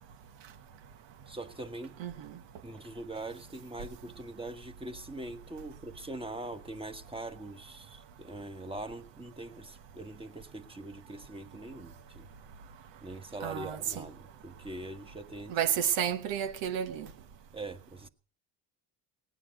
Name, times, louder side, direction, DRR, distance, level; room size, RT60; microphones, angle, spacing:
voice 1, 1.3-2.0 2.6-12.3 13.0-15.6 17.5-18.1, right 2 dB, 10° right, 1.4 m, -42 dB
voice 2, 2.0-2.3 13.4-14.0 15.5-17.1, right 9 dB, 80° right, 1.3 m, -31 dB
18.0 x 10.0 x 5.6 m
cardioid pair, 95°, 43 cm